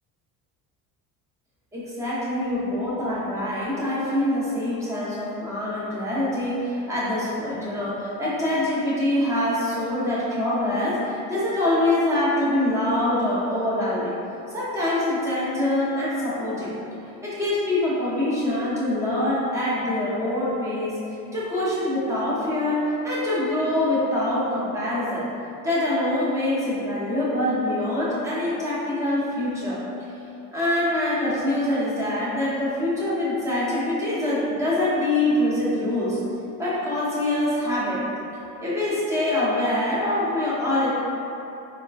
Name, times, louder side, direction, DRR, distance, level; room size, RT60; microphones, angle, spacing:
voice 1, 1.7-14.1 14.5-16.7 17.2-21.0 21.3-25.2 25.6-29.8 30.5-36.2 36.6-38.0 38.6-40.9, left 1 dB, 10° right, -9 dB, 0.6 m, -24 dB
3.5 x 2.4 x 2.3 m, 2.9 s
cardioid pair, 150°, 35 cm